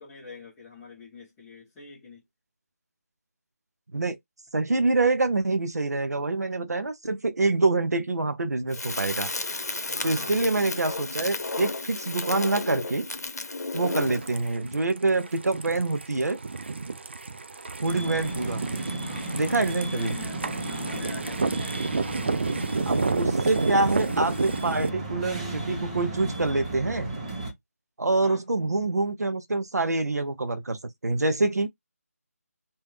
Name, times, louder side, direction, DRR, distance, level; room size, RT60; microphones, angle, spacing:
voice 1, 0.0-2.2 9.8-10.5 18.2-18.6 19.0-21.9 28.2-28.4, left 4 dB, 10° left, 1.1 m, -45 dB
voice 2, 4.5-9.3 10.0-13.1 13.7-16.4 17.8-18.6 19.3-20.1 22.9-27.1 28.0-31.7, right 3 dB, 90° right, 0.8 m, -26 dB
Crackle, 8.7-14.4, left 3 dB, 90° left, 0.8 m, -33 dB
sound 1, 14.0-24.9, right 4 dB, 45° right, 0.4 m, -30 dB
sound 2, 17.8-27.5, right 2 dB, 25° right, 1.0 m, -34 dB
3.5 x 2.7 x 3.1 m
figure-of-eight pair, 170°, 9 cm